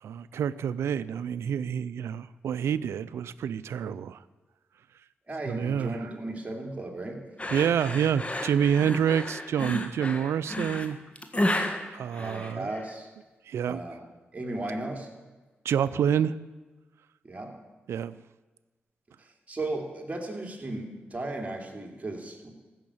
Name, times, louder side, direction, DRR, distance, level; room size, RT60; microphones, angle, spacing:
voice 1, 0.0-4.2 5.5-6.0 7.5-11.0 11.9-12.7 13.5-13.8 15.6-16.4 17.9-18.2, right 8 dB, 85° right, 16 dB, 0.4 m, -27 dB
voice 2, 5.3-7.2 12.2-13.1 13.6-14.0 14.3-15.1 17.2-17.6 19.2-22.5, right 2 dB, 30° right, 2 dB, 2.8 m, -35 dB
sound 1, 7.4-12.9, left 1 dB, 30° left, 1.6 m, -32 dB
15.0 x 6.4 x 8.6 m, 1.2 s
cardioid pair, 55°, 4 cm